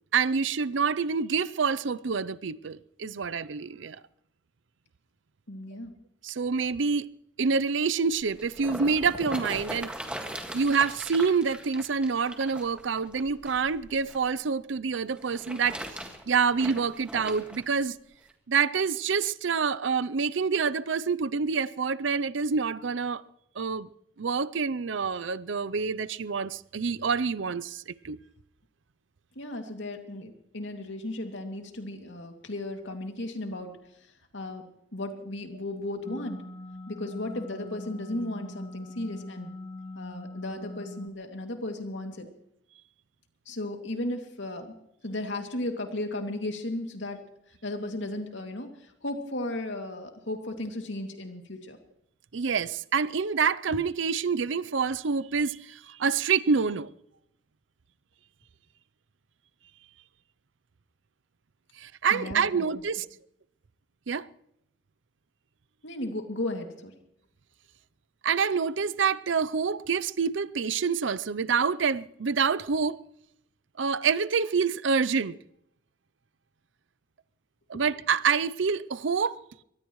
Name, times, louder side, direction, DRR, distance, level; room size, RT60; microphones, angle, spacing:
voice 1, 0.1-4.0 6.2-7.1 7.4-9.9 10.5-15.8 16.3-18.0 18.5-23.2 23.6-23.9 24.2-28.2 52.3-56.9 61.8-63.1 64.1-64.3 68.2-73.0 73.8-75.4 77.7-79.4, right 5 dB, 80° right, 0.6 m, -27 dB
voice 2, 5.5-5.9 29.4-33.7 34.3-34.6 34.9-36.4 36.9-39.5 40.0-42.3 43.5-44.7 45.0-47.2 47.6-51.8 62.1-62.5 65.8-66.9, left 1 dB, 80° left, 2.5 m, -35 dB
sound 1, 8.1-14.2 15.1-17.6 18.3-18.4, right 1 dB, 5° right, 1.8 m, -40 dB
sound 2, 36.0-41.1, left 1 dB, 20° left, 0.6 m, -42 dB
24.0 x 19.0 x 3.2 m
head